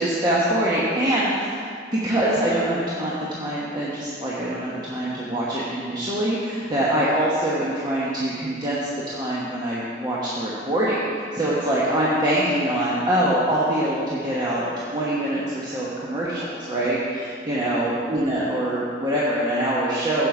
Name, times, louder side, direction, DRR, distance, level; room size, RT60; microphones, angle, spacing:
voice 1, 0.0-1.7 1.9-8.8 9.1-20.3, right 1 dB, 25° right, -7 dB, 1.1 m, -24 dB
8.1 x 7.6 x 4.9 m, 2.2 s
head